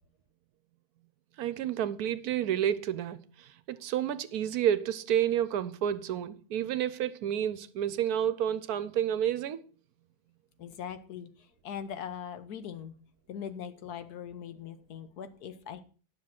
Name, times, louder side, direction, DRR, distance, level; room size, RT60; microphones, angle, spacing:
voice 1, 1.4-3.2 3.7-9.6, right 10 dB, 75° right, 1.1 m, -30 dB
voice 2, 10.6-11.3 11.6-12.9 13.3-15.8, left 8 dB, 75° left, 1.4 m, -40 dB
9.8 x 6.1 x 5.9 m
omnidirectional pair, 1.7 m